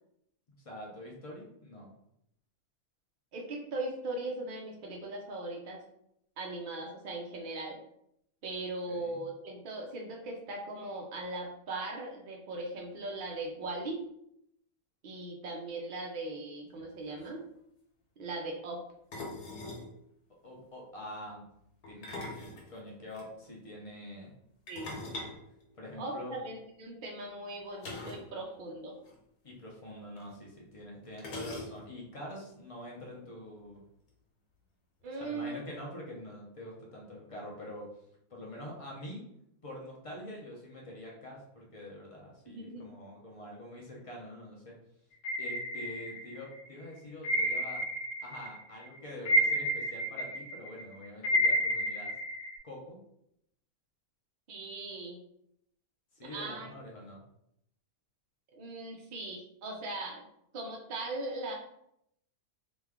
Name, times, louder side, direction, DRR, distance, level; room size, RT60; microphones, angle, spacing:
voice 1, 0.6-1.9 8.9-9.2 20.4-21.5 21.9-22.2 22.7-24.3 24.9-25.3 25.8-26.4 29.4-33.8 35.2-37.9 38.3-39.3 39.6-44.8 45.4-47.8 48.2-52.1 52.6-53.0 56.1-57.2, left 1 dB, 45° left, -3 dB, 0.4 m, -45 dB
voice 2, 3.3-5.8 6.4-7.8 8.4-14.0 15.0-17.4 18.2-18.8 24.7-24.9 26.0-28.9 35.0-35.6 42.5-42.8 54.5-55.2 56.3-56.7 58.5-60.3 60.5-61.5, right 2 dB, 75° right, -1 dB, 0.4 m, -39 dB
sound 1, 16.8-16.9 17.1-17.3 19.1-19.9 21.8-23.3 24.7-26.3 27.8-28.3 28.6-28.7 29.0-29.2 30.2-30.3 31.2-32.0, left 2 dB, 85° left, 1.3 m, -42 dB
sound 2, 45.2-46.5 47.2-48.5 48.8-52.6, equal, 65° left, 0.9 m, -30 dB
3.1 x 2.2 x 3.5 m, 0.76 s
omnidirectional pair, 1.5 m